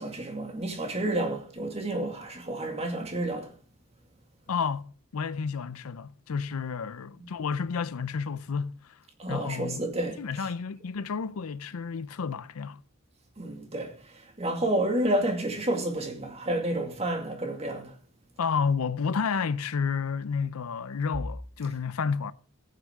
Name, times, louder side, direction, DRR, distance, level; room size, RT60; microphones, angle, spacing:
voice 1, 0.0-3.5 7.2-7.3 9.2-10.5 13.4-18.0, right 1 dB, 30° right, 2.1 m, -30 dB
voice 2, 4.5-8.9 9.3-9.8 10.2-12.8 18.4-22.3, left 5 dB, 80° left, 0.5 m, -31 dB
14.5 x 9.4 x 3.6 m
head